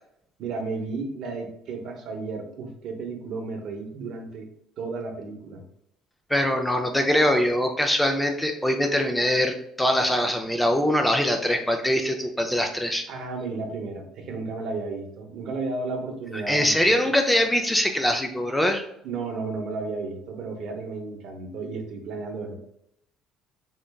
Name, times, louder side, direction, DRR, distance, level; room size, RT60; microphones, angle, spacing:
voice 1, 0.4-4.5 4.8-5.6 13.1-17.0 19.0-22.6, right 3 dB, 60° right, 4 dB, 0.7 m, -33 dB
voice 2, 6.3-13.1 16.5-18.8, equal, 5° left, 4 dB, 0.3 m, -23 dB
3.8 x 3.3 x 2.3 m, 0.75 s
cardioid pair, 135°, 0 cm